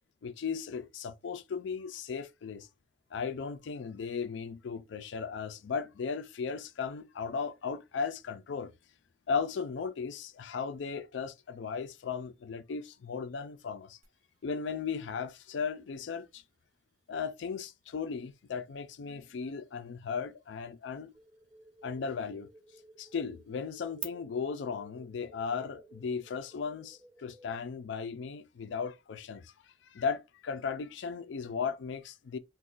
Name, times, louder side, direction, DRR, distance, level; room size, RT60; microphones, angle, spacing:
voice 1, 0.2-2.7 3.1-8.7 9.3-14.0 14.4-16.4 17.1-21.1 21.8-22.5 23.0-32.4, left 5 dB, 75° left, 0.4 m, -36 dB
sound 1, 14.0-24.0, right 10 dB, 45° right, 0.7 m, -54 dB
sound 2, 21.1-27.6, right 1 dB, 5° right, 1.5 m, -58 dB
2.4 x 2.2 x 3.7 m
head